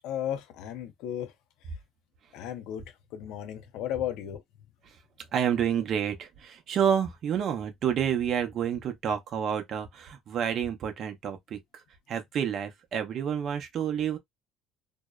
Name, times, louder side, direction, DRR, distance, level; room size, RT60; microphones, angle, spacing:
voice 1, 0.0-1.3 2.3-2.8 3.1-4.4, left 10 dB, 70° left, 0.5 m, -34 dB
voice 2, 5.3-11.8 12.1-14.2, right 8 dB, 45° right, 0.5 m, -29 dB
2.6 x 2.0 x 2.3 m
cardioid pair, 145°, 0 cm